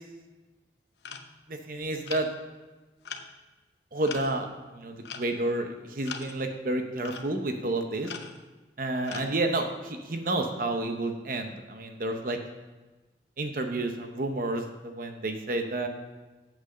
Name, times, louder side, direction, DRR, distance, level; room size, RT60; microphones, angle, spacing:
sound 1, 1.0-1.3 2.1-2.5 3.1-3.3 4.0-4.6 5.1-5.5 6.0-6.5 7.0-7.3 8.0-8.5 9.1-9.4, left 6 dB, 75° left, 0.7 m, -41 dB
voice 1, 1.5-2.3 3.9-8.1 8.8-12.4 13.4-15.9, right 2 dB, 50° right, 5 dB, 0.8 m, -30 dB
8.2 x 6.1 x 6.6 m, 1.2 s
head